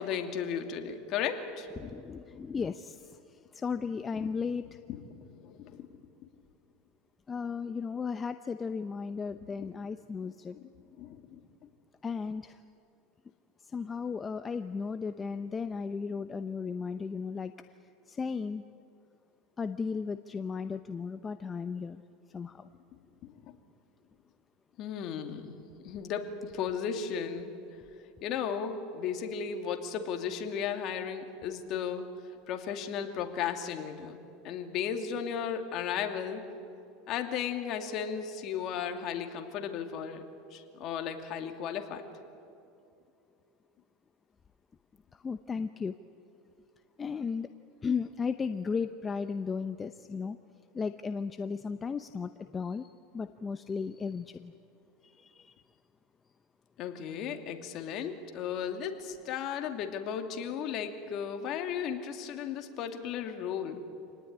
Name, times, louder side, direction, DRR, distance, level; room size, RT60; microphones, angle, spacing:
voice 1, 0.0-1.9 4.1-4.3 4.9-5.9 9.6-9.7 10.2-11.4 23.2-23.5 24.8-27.5 28.2-32.0 32.5-34.2 34.4-36.4 37.1-40.2 40.5-42.0 56.8-63.8, left 7 dB, 45° left, 5 dB, 2.6 m, -35 dB
voice 2, 1.8-3.1 3.5-4.6 7.3-10.6 12.0-12.6 13.7-17.5 18.1-18.6 19.6-22.0 22.3-22.7 45.2-45.9 47.0-47.5 47.8-50.4 50.7-52.9 53.1-54.5 55.2-55.5, left 5 dB, 20° left, 10 dB, 0.7 m, -35 dB
27.5 x 19.0 x 9.7 m, 2.6 s
supercardioid pair, 130°, 0 cm